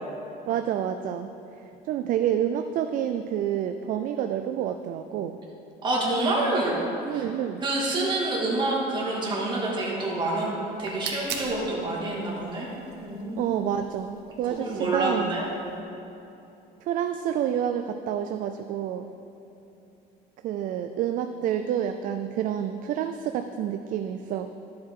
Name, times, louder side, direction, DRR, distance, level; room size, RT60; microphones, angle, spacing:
voice 1, 0.5-1.3 1.8-5.4 7.1-7.6 13.4-15.3 16.8-19.1 20.4-24.5, right 10 dB, 50° right, 7 dB, 0.4 m, -28 dB
voice 2, 5.8-6.8 7.1-7.2 7.6-10.5 10.8-12.7 13.0-13.5 14.5-15.5, right 2 dB, 25° right, -4 dB, 2.0 m, -27 dB
sound 1, 10.6-15.8, right 6 dB, 70° right, 1.2 m, -42 dB
12.0 x 7.6 x 3.7 m, 2.9 s
cardioid pair, 150°, 18 cm